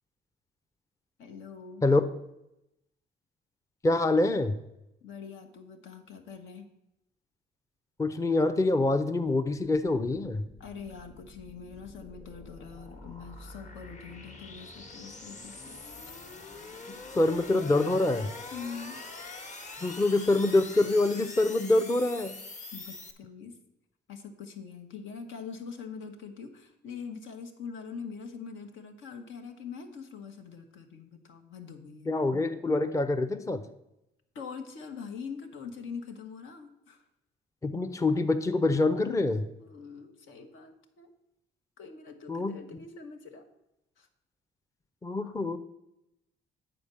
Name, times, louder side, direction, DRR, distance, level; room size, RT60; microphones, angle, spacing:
voice 1, 1.2-1.8 5.0-6.7 10.6-15.8 18.5-19.0 22.7-23.5 24.1-32.1 34.3-37.0 39.6-41.1 41.8-43.5 44.0-44.1, left 6 dB, 80° left, 5 dB, 1.2 m, -43 dB
voice 2, 3.8-4.6 8.0-10.5 17.2-18.3 19.8-22.4 32.1-33.6 37.6-39.4 42.3-42.5 45.0-45.6, left 2 dB, 15° left, 8 dB, 0.5 m, -25 dB
sound 1, 9.8-23.1, left 3 dB, 40° left, 1.3 m, -45 dB
8.8 x 4.3 x 6.8 m, 0.88 s
cardioid pair, 90°, 20 cm